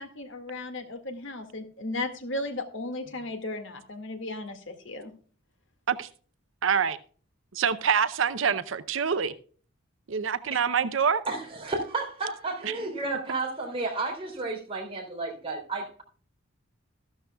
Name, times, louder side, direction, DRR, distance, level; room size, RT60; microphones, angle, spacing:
voice 1, 0.0-5.1, left 2 dB, 60° left, 1.9 m, -35 dB
voice 2, 6.6-7.0 7.5-9.3 10.1-11.2 12.6-12.7, right 6 dB, 65° right, 0.6 m, -25 dB
voice 3, 11.3-16.0, right 3 dB, 25° right, 3.5 m, -32 dB
14.0 x 12.5 x 2.3 m
head